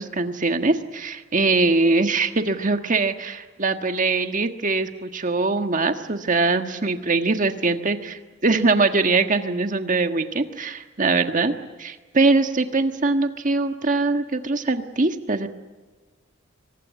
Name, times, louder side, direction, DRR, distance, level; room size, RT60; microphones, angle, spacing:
voice 1, 0.0-11.5 11.8-15.5, right 3 dB, 40° right, 7 dB, 1.5 m, -22 dB
24.0 x 20.0 x 9.4 m, 1.4 s
head